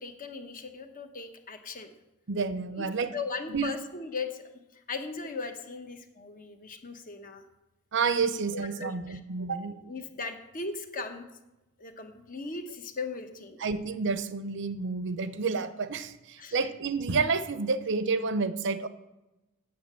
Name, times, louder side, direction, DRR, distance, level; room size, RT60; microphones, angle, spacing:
voice 1, 0.0-1.9 2.7-2.9 3.1-7.5 8.5-9.2 9.6-11.3 11.8-13.6 16.4-16.7, left 4 dB, 40° left, 7 dB, 1.0 m, -38 dB
voice 2, 2.3-3.1 3.5-3.7 7.9-9.8 13.6-18.9, right 4 dB, 55° right, 13 dB, 0.6 m, -29 dB
8.6 x 7.4 x 7.4 m, 0.98 s
head